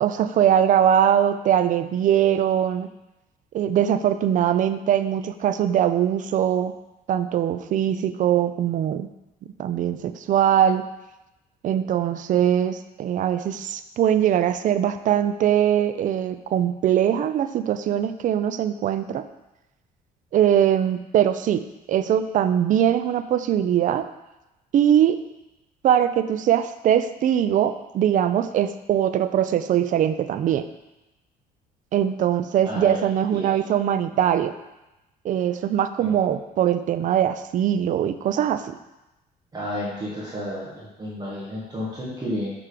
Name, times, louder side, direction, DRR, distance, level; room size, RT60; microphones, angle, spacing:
voice 1, 0.0-2.9 3.5-6.7 7.1-9.1 9.6-10.9 11.6-19.2 20.3-21.6 21.9-24.0 24.7-25.2 25.8-30.6 31.9-34.5 35.2-38.8, right 10 dB, 50° right, 11 dB, 0.4 m, -21 dB
voice 2, 32.6-33.6 36.0-36.1 39.5-42.5, equal, 25° right, -6 dB, 1.4 m, -32 dB
6.6 x 3.6 x 5.0 m, 0.98 s
cardioid pair, 110°, 17 cm